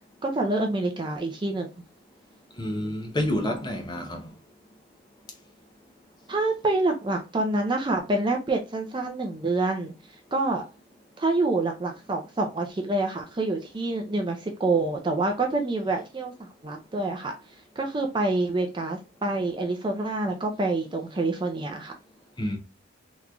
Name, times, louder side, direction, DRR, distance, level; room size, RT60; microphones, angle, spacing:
voice 1, 0.2-1.7 6.3-9.9 10.3-10.6 11.2-17.3 17.8-21.9, right 2 dB, 25° right, 0.4 m, -27 dB
voice 2, 2.6-4.3 22.4-22.6, left 1 dB, 20° left, 0.7 m, -28 dB
3.7 x 3.0 x 2.2 m
head